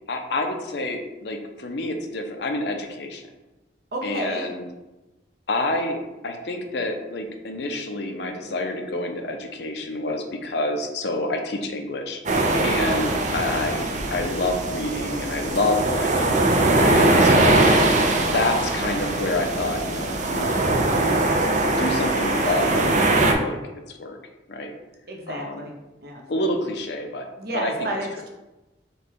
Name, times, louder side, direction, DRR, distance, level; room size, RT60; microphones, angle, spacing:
voice 1, 0.1-3.3 4.0-4.7 5.5-12.2 12.6-17.7 18.2-20.6 20.9-21.2 21.8-23.6 24.0-24.2 24.5-24.7 25.3-25.6 26.3-27.3 27.5-27.9, left 2 dB, 65° left, 4 dB, 0.6 m, -28 dB
voice 2, 3.9-4.5 16.6-17.0 25.1-25.8 26.0-26.2 27.4-28.3, right 1 dB, 60° right, 0 dB, 0.9 m, -31 dB
sound 1, 12.3-23.3, right 2 dB, 40° right, 0.5 m, -21 dB
5.1 x 2.3 x 4.4 m, 1.0 s
head